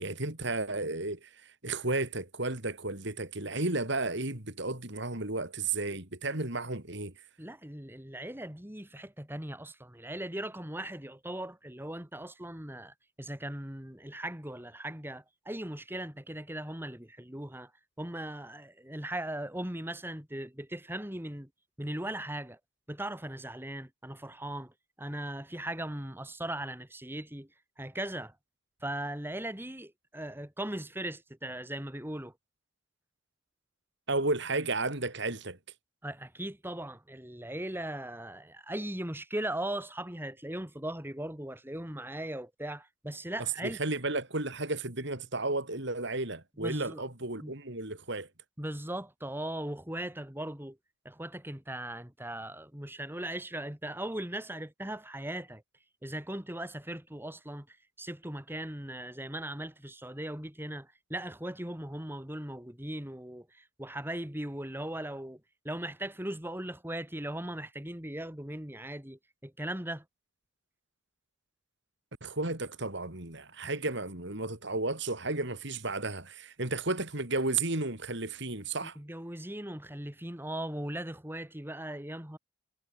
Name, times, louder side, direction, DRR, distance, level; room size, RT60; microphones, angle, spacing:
voice 1, 0.0-7.1 34.1-35.6 43.6-48.3 72.2-79.0, right 2 dB, 60° right, 4.1 m, -33 dB
voice 2, 7.4-17.7 18.0-21.5 21.8-22.6 22.9-24.7 25.0-27.5 27.8-28.3 28.8-32.3 36.0-43.8 46.6-47.0 47.4-47.5 48.6-50.8 51.0-55.6 56.0-65.4 65.6-70.0 79.0-82.4, right 1 dB, 10° right, 2.7 m, -39 dB
head